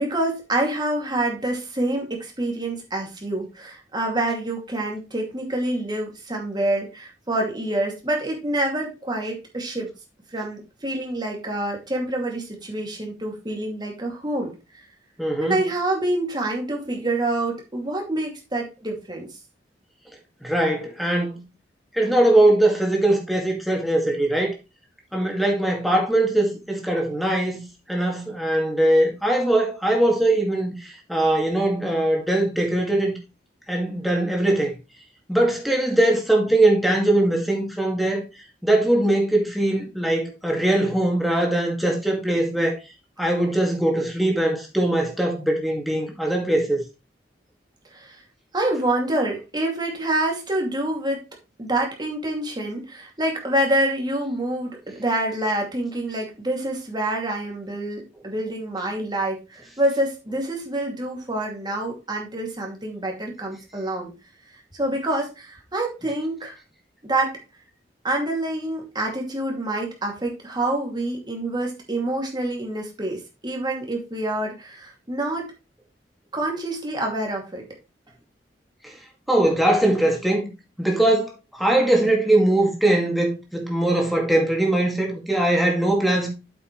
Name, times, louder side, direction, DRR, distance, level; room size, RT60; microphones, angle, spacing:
voice 1, 0.0-9.9 10.3-14.5 15.4-19.3 47.9-48.2 48.5-51.2 51.6-64.1 64.8-66.6 67.0-67.4 68.0-75.5 76.3-77.6, right 1 dB, 25° right, 2.5 m, -27 dB
voice 2, 15.2-15.6 20.4-21.4 21.9-24.5 25.1-27.6 27.9-33.2 33.7-34.7 35.3-38.2 38.6-42.8 43.2-46.8 79.3-80.5 80.8-86.3, right 1 dB, ahead, 2.2 m, -21 dB
8.2 x 7.8 x 3.2 m
head